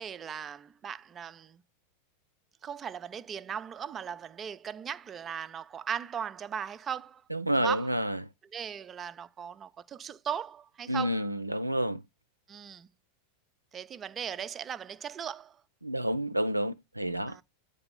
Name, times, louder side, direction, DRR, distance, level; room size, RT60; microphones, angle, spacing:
voice 1, 0.0-1.6 2.6-7.2 7.5-7.9 8.4-11.3 12.5-12.9 13.7-15.6 17.3-17.4, right 8 dB, 25° right, 0.5 m, -38 dB
voice 2, 7.3-8.2 10.9-12.0 15.8-17.4, right 1 dB, 85° right, 0.5 m, -29 dB
8.7 x 3.4 x 5.3 m
figure-of-eight pair, 90°, 0 cm